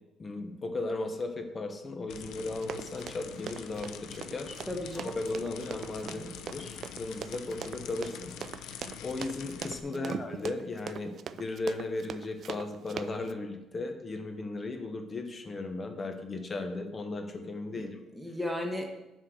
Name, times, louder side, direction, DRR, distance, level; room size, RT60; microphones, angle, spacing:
voice 1, 0.2-4.6 4.9-18.0, left 2 dB, 30° left, 6 dB, 1.3 m, -36 dB
sound 1, 2.1-9.8, left 8 dB, 80° left, 0.7 m, -45 dB
Run, 2.6-13.3, right 8 dB, 55° right, 0.4 m, -41 dB
voice 2, 4.7-5.1 6.0-6.3 9.9-10.1 17.7-17.9 18.1-19.1, left 1 dB, ahead, 2 dB, 1.4 m, -36 dB
9.9 x 4.4 x 6.4 m, 0.98 s
cardioid pair, 120°, 0 cm